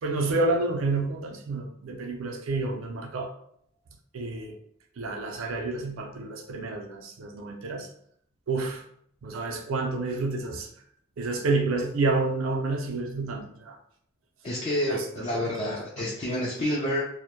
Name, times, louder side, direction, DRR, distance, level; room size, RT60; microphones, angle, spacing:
voice 1, 0.0-3.3 4.1-4.6 5.0-7.9 8.5-8.8 9.2-10.7 11.2-13.7 14.9-16.1, right 3 dB, 85° right, 2 dB, 0.4 m, -29 dB
voice 2, 14.4-17.0, left 1 dB, 30° left, -5 dB, 0.4 m, -29 dB
2.1 x 2.0 x 2.9 m, 0.67 s
head